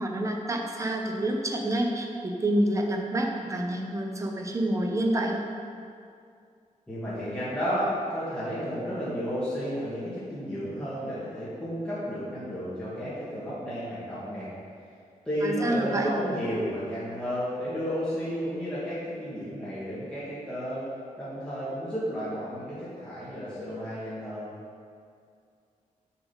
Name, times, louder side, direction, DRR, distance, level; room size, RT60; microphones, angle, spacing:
voice 1, 0.0-5.4 15.4-16.1, right 1 dB, 20° right, 1 dB, 0.8 m, -28 dB
voice 2, 6.9-14.5 15.3-20.9 21.2-24.5, equal, 5° left, -12 dB, 2.0 m, -32 dB
7.3 x 6.6 x 5.5 m, 2.3 s
wide cardioid pair, 155°, 14 cm